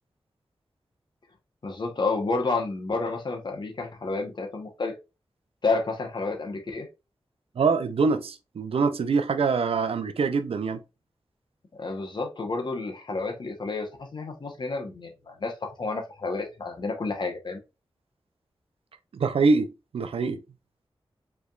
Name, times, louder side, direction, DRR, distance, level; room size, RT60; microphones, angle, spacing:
voice 1, 1.6-4.9 5.6-6.9 11.7-17.6, left 3 dB, 50° left, 1.0 m, -30 dB
voice 2, 7.6-10.8 19.1-20.4, right 4 dB, 90° right, 0.5 m, -24 dB
5.0 x 3.4 x 2.4 m
wide cardioid pair, 115°, 10 cm